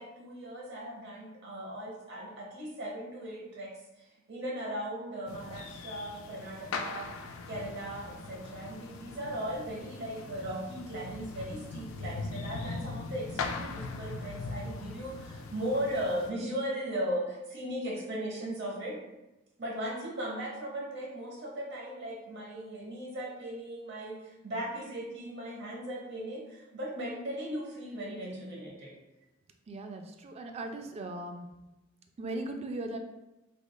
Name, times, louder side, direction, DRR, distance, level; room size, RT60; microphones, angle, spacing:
voice 1, 0.0-3.7 4.3-19.0 19.6-28.9, right 1 dB, 60° right, -3 dB, 0.8 m, -37 dB
sound 1, 5.3-16.3, left 4 dB, 80° left, 0.3 m, -40 dB
voice 2, 29.7-31.5 32.2-33.0, right 2 dB, 30° right, 5 dB, 0.3 m, -38 dB
3.6 x 3.1 x 2.2 m, 0.98 s
head